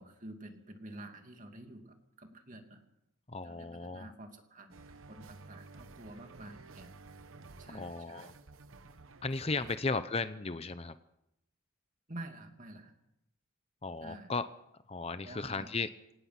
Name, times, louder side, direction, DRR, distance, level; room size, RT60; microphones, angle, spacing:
voice 1, 0.0-2.8 3.4-6.9 7.6-8.4 9.6-9.7 12.1-12.9 14.0-14.3 15.2-15.7, right 1 dB, 35° right, 4 dB, 2.6 m, -49 dB
voice 2, 3.3-4.1 7.7-8.3 9.2-11.0 13.8-14.5 14.9-15.9, left 3 dB, 30° left, 12 dB, 0.7 m, -35 dB
sound 1, 4.7-9.8, right 3 dB, 70° right, 1.1 m, -53 dB
26.5 x 18.0 x 6.0 m, 0.85 s
head